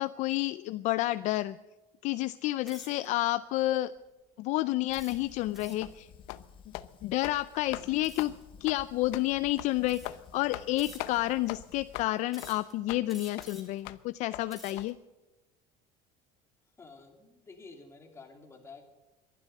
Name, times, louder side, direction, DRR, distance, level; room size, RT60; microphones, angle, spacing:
voice 1, 0.0-1.6 2.0-3.9 4.4-6.1 7.0-8.3 8.6-10.0 10.3-15.0, left 17 dB, 50° left, 14 dB, 0.4 m, -30 dB
sound 1, 2.6-3.1 3.7-4.0 4.9-5.9 8.0-8.4 9.3-9.4 9.8-10.3 10.8-11.4 12.3-12.7 13.1-13.8 14.3-14.9, left 1 dB, ahead, 3.5 m, -51 dB
Fire, 4.9-12.0, left 7 dB, 35° left, 1.4 m, -54 dB
sound 2, 5.8-6.0 6.3-6.5 6.7-6.9 7.2-7.4 7.7-7.9 8.2-8.3 8.7-8.8 9.1-9.3 9.6-9.7 10.0-10.2 10.5-10.7 11.0-11.1 11.5-11.6 11.9-12.1 12.4-12.5 12.9-13.0 13.4-13.5 13.9-14.0 14.3-14.4 14.8-14.9, left 17 dB, 75° left, 0.8 m, -40 dB
voice 2, 16.8-18.9, left 4 dB, 15° left, 3 dB, 2.7 m, -50 dB
21.5 x 12.0 x 5.4 m, 1.1 s
cardioid pair, 160°, 16 cm